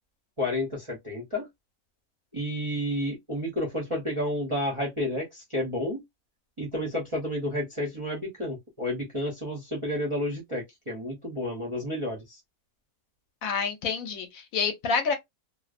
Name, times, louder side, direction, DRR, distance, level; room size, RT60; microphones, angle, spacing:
voice 1, 0.4-1.5 2.3-6.0 6.6-12.4, left 1 dB, 35° right, 0.5 m, -31 dB
voice 2, 13.4-15.1, left 5 dB, 70° left, 1.0 m, -28 dB
2.5 x 2.1 x 2.4 m
omnidirectional pair, 1.6 m